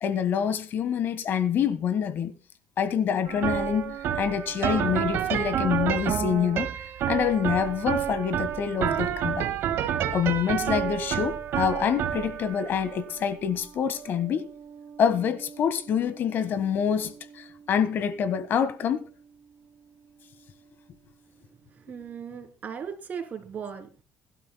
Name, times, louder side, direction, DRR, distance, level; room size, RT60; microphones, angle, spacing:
voice 1, 0.0-2.4 2.8-6.7 7.1-9.5 10.1-14.5 15.0-19.0, left 8 dB, 50° left, 1.4 m, -26 dB
sound 1, 3.3-20.5, right 9 dB, 60° right, 1.7 m, -31 dB
voice 2, 21.9-24.0, right 7 dB, 40° right, 3.1 m, -37 dB
22.5 x 12.0 x 2.2 m
cardioid pair, 120°, 4 cm